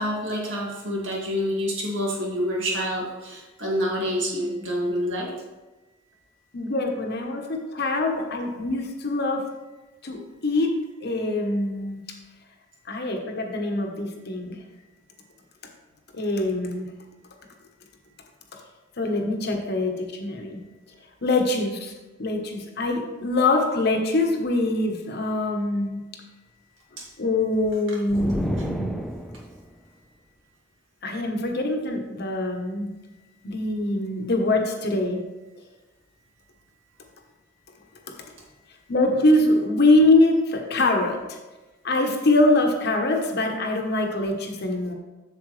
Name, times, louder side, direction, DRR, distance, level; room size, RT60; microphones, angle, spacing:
voice 1, 0.0-5.3 27.0-27.1, equal, 75° right, -3 dB, 2.1 m, -27 dB
voice 2, 6.5-9.5 10.0-12.0 12.9-14.6 16.1-16.9 19.0-20.6 21.2-21.9 22.2-26.0 27.2-29.1 31.0-32.9 33.4-35.2 38.9-41.4 41.8-44.9, left 2 dB, 55° left, 3 dB, 1.0 m, -23 dB
sound 1, 28.1-29.7, equal, ahead, 0.3 m, -30 dB
7.7 x 7.0 x 3.2 m, 1.1 s
head